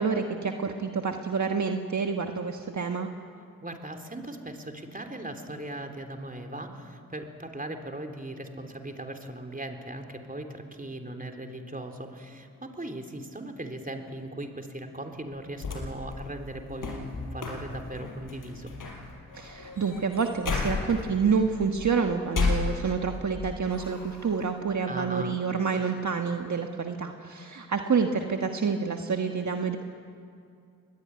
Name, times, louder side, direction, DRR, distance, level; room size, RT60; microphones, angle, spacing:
voice 1, 0.0-3.1 19.3-29.8, right 5 dB, 55° right, 4 dB, 1.5 m, -28 dB
voice 2, 3.6-18.7 24.9-25.4, right 1 dB, 25° right, 4 dB, 3.5 m, -38 dB
sound 1, 15.6-23.3 23.7-24.5, left 4 dB, 70° left, 4.8 m, -34 dB
24.5 x 20.5 x 9.6 m, 2.4 s
cardioid pair, 45°, 34 cm